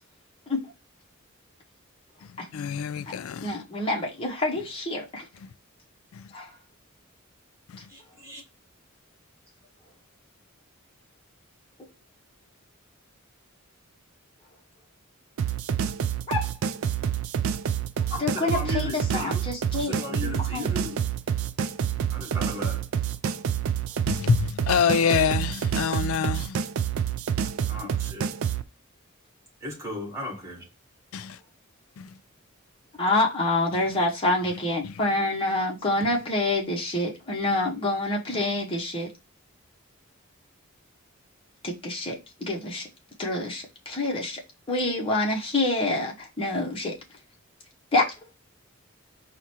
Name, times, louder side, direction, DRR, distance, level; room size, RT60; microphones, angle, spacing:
voice 1, 2.5-3.5 24.1-24.4 24.7-26.5 31.1-31.3 32.0-32.1, left 7 dB, 80° left, 0.4 m, -25 dB
voice 2, 3.4-5.2 6.3-6.5 16.3-16.5 18.2-20.2 20.5-20.7 33.0-39.1 41.6-42.2 42.4-42.8 43.2-44.4 44.7-46.9 47.9-48.1, left 2 dB, 25° left, 0.8 m, -27 dB
voice 3, 7.9-8.4 18.1-21.0 22.1-22.9 27.7-28.3 29.6-30.7, left 2 dB, 15° right, 1.4 m, -36 dB
sound 1, 15.4-28.6, right 8 dB, 75° right, 0.4 m, -28 dB
4.7 x 2.1 x 4.2 m
head